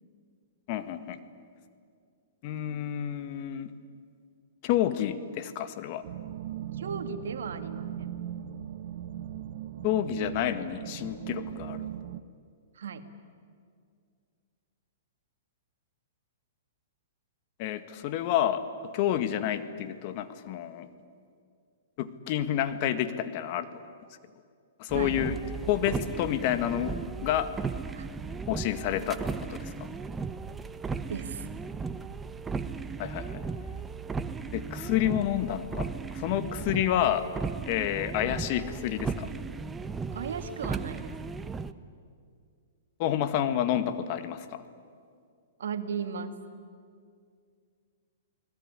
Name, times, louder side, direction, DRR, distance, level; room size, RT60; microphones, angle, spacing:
voice 1, 0.7-1.2 2.4-3.7 4.6-6.0 9.8-11.9 17.6-18.6 18.9-20.9 22.0-23.7 24.8-25.4 25.7-27.0 27.2-27.5 28.5-29.9 33.0-33.4 34.5-37.3 37.7-39.3 43.0-44.6, left 11 dB, 45° left, 10 dB, 1.8 m, -29 dB
Scary Drone, 6.0-12.2, right 11 dB, 60° right, 1.1 m, -39 dB
voice 2, 6.8-8.1 12.8-13.1 24.9-25.2 28.0-28.1 31.1-31.5 40.1-41.2 45.6-46.4, right 6 dB, 75° right, 8 dB, 2.2 m, -36 dB
sound 1, 24.9-41.7, right 4 dB, 15° right, 1.0 m, -36 dB
29.5 x 20.0 x 9.9 m, 2.2 s
hypercardioid pair, 130°, 0 cm